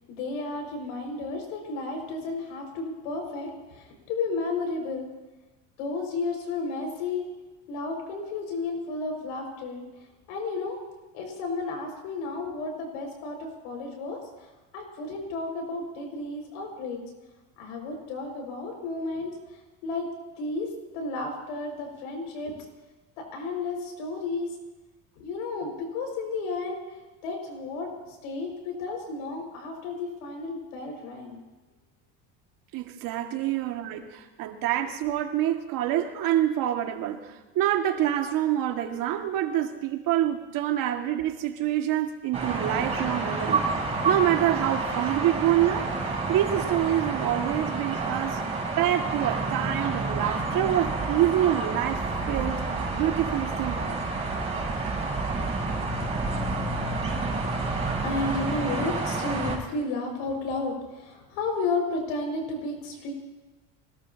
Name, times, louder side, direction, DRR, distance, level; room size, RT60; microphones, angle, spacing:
voice 1, 0.1-5.1 5.8-7.2 7.7-10.8 11.1-17.0 17.6-20.1 20.4-22.6 23.3-24.5 25.2-31.4 33.3-33.5 57.2-63.1, left 3 dB, 85° left, 2 dB, 5.8 m, -33 dB
voice 2, 32.7-43.6 44.1-45.9 46.3-48.4 48.8-52.7 52.9-54.0, right 12 dB, 65° right, 4 dB, 2.2 m, -26 dB
sound 1, 42.3-59.6, right 3 dB, 15° right, 6.9 m, -29 dB
25.5 x 19.0 x 2.9 m, 1.2 s
supercardioid pair, 110°, 37 cm